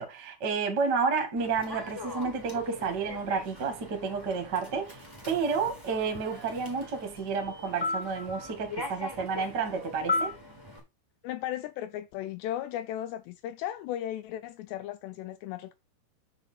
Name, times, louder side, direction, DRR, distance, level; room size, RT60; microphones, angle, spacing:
voice 1, 0.0-10.3, right 5 dB, 40° right, 1.6 m, -31 dB
Human voice / Subway metro underground, 1.4-10.8, left 3 dB, 5° left, 2.2 m, -38 dB
voice 2, 11.2-15.7, left 12 dB, 80° left, 2.6 m, -36 dB
8.0 x 6.3 x 4.5 m
omnidirectional pair, 5.5 m